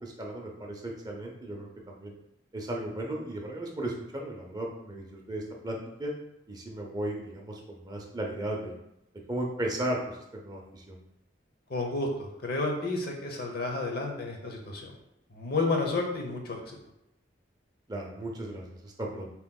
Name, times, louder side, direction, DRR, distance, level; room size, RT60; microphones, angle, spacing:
voice 1, 0.0-2.1 2.5-6.1 6.5-8.7 9.3-11.0 17.9-19.3, right 1 dB, 20° right, 0 dB, 0.6 m, -35 dB
voice 2, 11.7-14.9 15.3-16.8, left 3 dB, 55° left, 1 dB, 0.8 m, -31 dB
7.2 x 3.0 x 2.3 m, 0.83 s
head